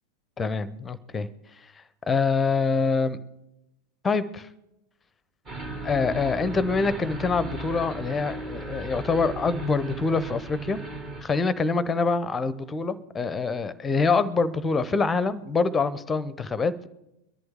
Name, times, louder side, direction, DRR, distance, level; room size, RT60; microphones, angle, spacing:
voice 1, 0.4-1.3 2.1-3.2 4.0-4.5 5.8-10.8 11.2-16.9, left 4 dB, 15° left, 16 dB, 0.7 m, -25 dB
sound 1, 5.5-11.2, right 2 dB, 25° right, 1.9 m, -36 dB
23.5 x 11.0 x 3.6 m, 0.91 s
figure-of-eight pair, 90°, 0 cm